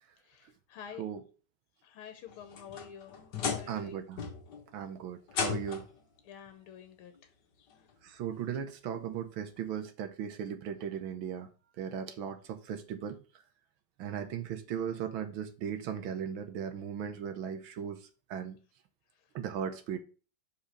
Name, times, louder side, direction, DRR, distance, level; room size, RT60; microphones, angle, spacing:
voice 1, 0.2-1.0 1.8-4.0 6.2-7.3 7.6-7.9 19.1-19.2, left 8 dB, 90° left, 1.8 m, -49 dB
sound 1, 2.3-3.9 4.2-4.6 5.3-6.0 7.2-7.3 7.9-8.0 9.6-9.7, left 6 dB, 55° left, 1.8 m, -36 dB
voice 2, 3.7-4.2 4.7-5.9 8.0-11.5 11.8-13.2 14.0-18.6 19.3-20.0, right 8 dB, 75° right, 1.5 m, -37 dB
5.1 x 5.1 x 6.4 m
omnidirectional pair, 2.4 m